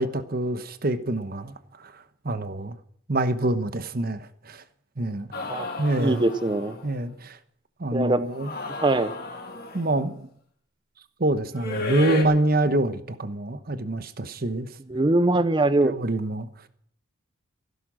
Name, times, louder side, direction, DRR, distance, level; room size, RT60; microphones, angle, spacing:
voice 1, 0.0-1.5 1.8-2.8 3.1-4.6 5.0-5.3 5.8-6.3 6.8-7.4 7.8-8.5 9.7-10.3 11.2-14.7 15.8-16.5, right 1 dB, 45° right, 1.1 m, -26 dB
sound 1, 5.3-6.9 8.3-10.0 11.5-12.2, left 3 dB, 50° left, 2.4 m, -33 dB
voice 2, 6.0-6.7 7.9-8.2 8.8-9.2 14.9-15.9, right 2 dB, 25° right, 0.5 m, -22 dB
15.5 x 12.5 x 6.2 m
head